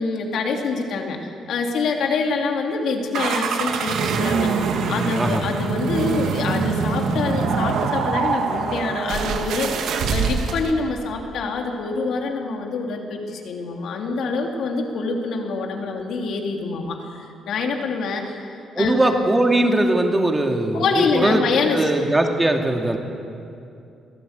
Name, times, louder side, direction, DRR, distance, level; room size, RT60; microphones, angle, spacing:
voice 1, 0.0-18.4 18.8-19.0 20.7-21.9, left 4 dB, 75° left, 2 dB, 3.0 m, -25 dB
sound 1, 3.1-10.7, right 5 dB, 80° right, 1.7 m, -24 dB
voice 2, 18.8-21.4 21.7-23.0, right 1 dB, 15° right, 3 dB, 2.4 m, -20 dB
23.0 x 14.5 x 8.2 m, 2.6 s
cardioid pair, 90°, 0 cm